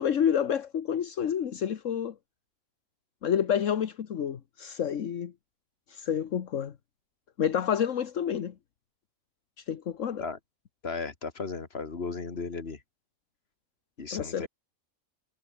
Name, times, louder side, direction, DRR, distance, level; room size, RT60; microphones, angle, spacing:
voice 1, 0.0-2.1 3.2-5.3 5.9-6.7 7.4-8.5 9.6-10.2 14.1-14.5, left 8 dB, 70° left, 1.4 m, -29 dB
voice 2, 10.8-12.8 14.0-14.5, left 4 dB, 50° left, 2.3 m, -35 dB
omnidirectional pair, 1.4 m